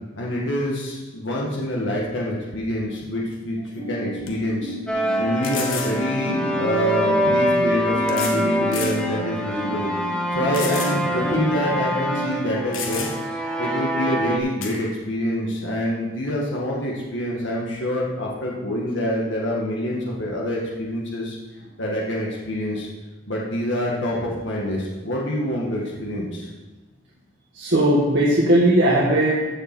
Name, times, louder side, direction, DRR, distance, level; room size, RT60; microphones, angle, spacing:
voice 1, 0.2-3.6 3.9-4.8 5.2-9.9 10.3-13.1 13.6-21.4 21.8-22.9 23.3-26.5, equal, 65° left, -3 dB, 1.8 m, -26 dB
sound 1, 3.6-12.6, right 2 dB, 20° right, 3.5 m, -33 dB
sound 2, 3.7-3.8 4.3-4.4 5.4-6.0 7.1-7.2 8.1-8.4 8.7-9.0 9.5-9.6 10.5-11.0 11.3-11.4 12.3-12.4 12.7-13.4 14.6-14.8, left 6 dB, 90° left, 1.4 m, -31 dB
sound 3, 4.9-14.4, equal, 5° left, 1.0 m, -25 dB
voice 2, 27.5-29.5, right 1 dB, 65° right, -6 dB, 1.9 m, -18 dB
14.5 x 6.8 x 4.5 m, 1.2 s
head